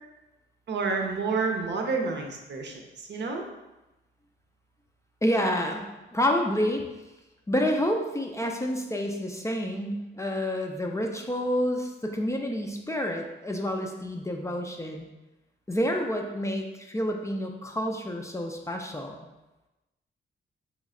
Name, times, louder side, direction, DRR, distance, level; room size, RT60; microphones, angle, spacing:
voice 1, 0.7-3.4, right 4 dB, 60° right, 2 dB, 0.6 m, -29 dB
voice 2, 5.2-6.8 7.5-15.1 15.7-19.3, equal, 15° left, 2 dB, 0.4 m, -29 dB
3.2 x 3.1 x 3.7 m, 1.0 s
cardioid pair, 90°, 20 cm